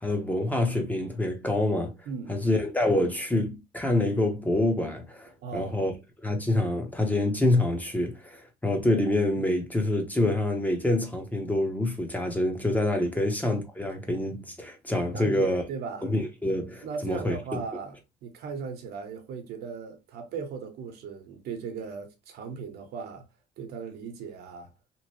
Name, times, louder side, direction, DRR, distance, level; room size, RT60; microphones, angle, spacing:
voice 1, 0.0-1.9 2.3-5.9 6.2-15.6 16.0-17.4, left 1 dB, 10° left, 0.6 m, -26 dB
voice 2, 2.1-2.4 5.4-5.8 13.1-13.2 15.1-16.1 16.8-23.2 23.6-24.7, right 5 dB, 70° right, 0.9 m, -37 dB
2.9 x 2.0 x 3.0 m
cardioid pair, 110°, 17 cm